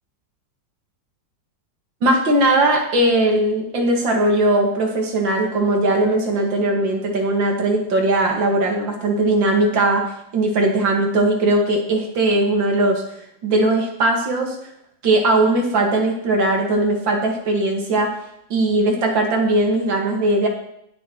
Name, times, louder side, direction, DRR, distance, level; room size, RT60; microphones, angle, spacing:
voice 1, 2.0-13.0 13.4-14.6 15.0-18.1 18.5-20.5, right 2 dB, 85° right, 1 dB, 2.6 m, -19 dB
19.0 x 7.4 x 3.1 m, 0.76 s
omnidirectional pair, 2.0 m